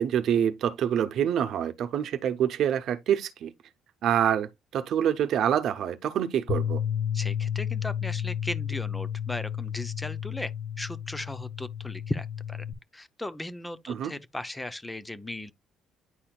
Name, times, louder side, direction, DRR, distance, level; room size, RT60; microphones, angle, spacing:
voice 1, 0.0-3.5 4.0-6.8 13.9-14.1, right 9 dB, 60° right, 0.8 m, -26 dB
Bass guitar, 6.5-12.7, left 9 dB, 45° left, 2.0 m, -32 dB
voice 2, 7.1-10.5 10.8-12.6 12.9-15.5, left 1 dB, 10° left, 0.6 m, -37 dB
9.9 x 4.2 x 2.3 m
cardioid pair, 115°, 0 cm